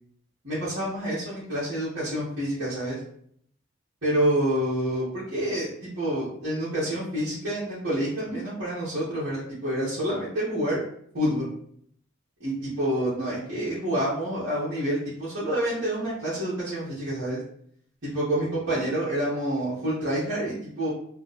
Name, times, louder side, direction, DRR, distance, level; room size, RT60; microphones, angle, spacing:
voice 1, 0.4-3.0 4.0-10.8 11.1-11.5 12.4-17.4 18.0-20.9, right 1 dB, 55° right, -12 dB, 1.3 m, -28 dB
3.1 x 2.1 x 3.9 m, 0.66 s
head